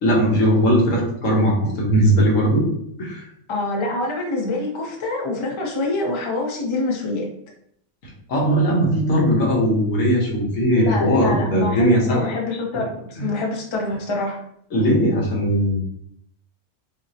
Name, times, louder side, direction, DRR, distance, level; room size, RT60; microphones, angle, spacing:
voice 1, 0.0-2.7 3.0-3.3 8.3-12.3 13.2-13.3 14.7-15.8, equal, 75° left, -2 dB, 1.5 m, -19 dB
voice 2, 3.5-7.3 10.7-14.4, left 2 dB, 30° left, 0 dB, 0.5 m, -26 dB
5.8 x 2.0 x 2.8 m, 0.70 s
omnidirectional pair, 1.4 m